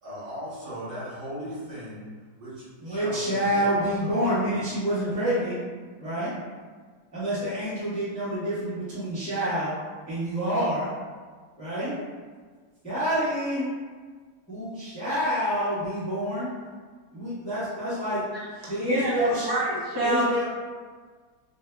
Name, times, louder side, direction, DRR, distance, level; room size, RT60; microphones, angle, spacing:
voice 1, 0.0-2.1 2.4-4.5, equal, 80° right, -10 dB, 2.1 m, -38 dB
voice 2, 2.8-5.6 6.0-6.3 7.1-9.7 10.1-10.9 11.6-11.9 12.8-13.7 14.5-16.5 17.1-18.2 18.7-19.5 20.0-20.4, equal, 5° left, -12 dB, 0.8 m, -27 dB
voice 3, 18.8-20.4, right 1 dB, 30° right, -8 dB, 0.4 m, -27 dB
5.2 x 2.1 x 2.2 m, 1.5 s
omnidirectional pair, 1.8 m